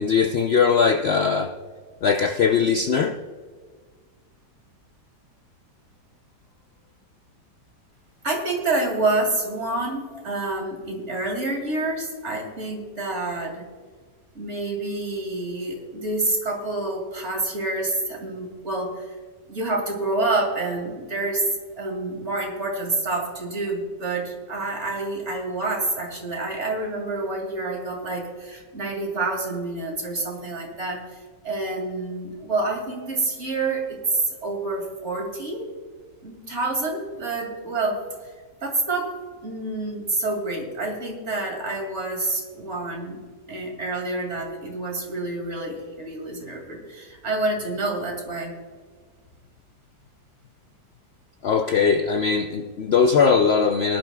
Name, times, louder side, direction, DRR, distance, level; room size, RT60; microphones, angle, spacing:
voice 1, 0.0-1.5 2.0-3.2 51.4-54.0, left 5 dB, 90° left, 6 dB, 0.5 m, -20 dB
voice 2, 8.2-13.7 14.3-19.2 19.5-21.4 21.8-35.7 36.2-38.0 38.6-39.1 39.4-43.2 43.5-48.5, right 2 dB, 40° right, 1 dB, 2.7 m, -28 dB
19.0 x 11.5 x 2.3 m, 1.5 s
omnidirectional pair, 1.8 m